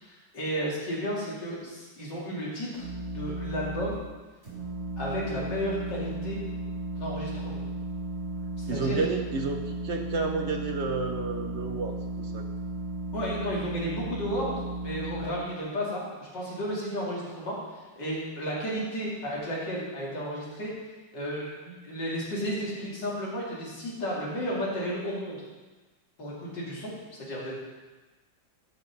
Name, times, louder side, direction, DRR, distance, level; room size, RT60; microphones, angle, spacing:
voice 1, 0.0-4.0 5.0-6.4 7.0-7.6 8.7-9.0 13.1-14.5 14.8-20.7 21.1-25.4 26.2-26.9 27.2-27.5, equal, 65° left, -5 dB, 3.2 m, -33 dB
sound 1, 2.7-3.9 4.4-15.3, right 1 dB, 40° right, 3.5 m, -35 dB
voice 2, 8.7-12.4, right 4 dB, 55° right, 4 dB, 0.8 m, -31 dB
12.0 x 6.0 x 5.3 m, 1.2 s
omnidirectional pair, 2.0 m